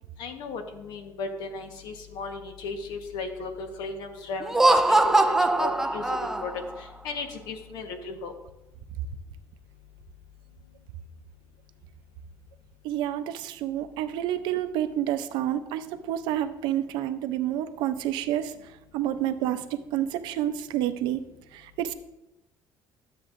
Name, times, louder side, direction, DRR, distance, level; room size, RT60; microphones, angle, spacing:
voice 1, 0.2-4.8 5.0-6.5 7.0-8.3, left 4 dB, 75° left, 5 dB, 1.2 m, -36 dB
Laughter, 4.4-6.7, right 2 dB, 5° right, 0.3 m, -22 dB
voice 2, 12.8-18.5 18.9-21.3 21.5-21.9, right 11 dB, 85° right, 10 dB, 0.6 m, -29 dB
12.0 x 7.9 x 2.6 m, 0.96 s
cardioid pair, 160°, 8 cm